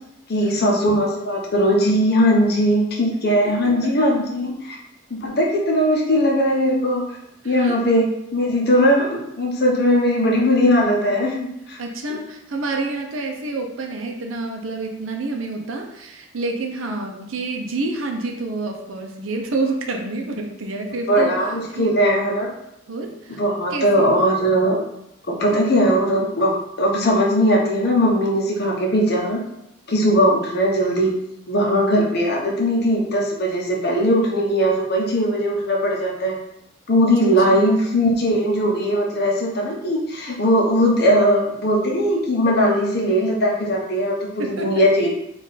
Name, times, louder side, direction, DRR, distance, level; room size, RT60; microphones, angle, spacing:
voice 1, 0.3-4.8 5.1-7.1 7.4-11.4 11.7-11.8 21.1-22.5 23.4-24.8 25.3-29.4 29.9-31.1 31.5-36.4 36.9-45.2, equal, 50° left, -1 dB, 0.8 m, -19 dB
voice 2, 3.4-4.1 7.4-7.8 11.8-21.4 21.7-21.9 22.9-23.4 23.7-24.1 25.5-25.7 37.2-37.7 44.4-44.9, right 3 dB, 75° right, 3 dB, 0.6 m, -28 dB
3.7 x 2.5 x 4.0 m, 0.81 s
head